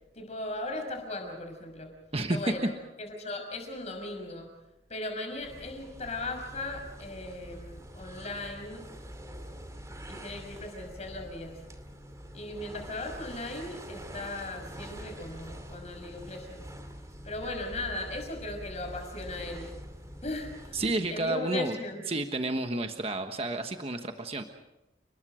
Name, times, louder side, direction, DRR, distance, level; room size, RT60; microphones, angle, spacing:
voice 1, 0.1-1.9 2.3-2.7 3.0-4.5 4.9-8.9 10.1-11.6 12.3-16.6 17.2-19.8 20.2-20.8 21.1-22.0, left 2 dB, 40° left, 4 dB, 6.0 m, -37 dB
voice 2, 2.1-2.7 20.7-21.8 22.1-24.4, right 2 dB, 35° right, 6 dB, 1.3 m, -30 dB
sound 1, 5.3-21.2, equal, 20° right, 2.5 m, -45 dB
30.0 x 21.0 x 5.1 m, 0.94 s
head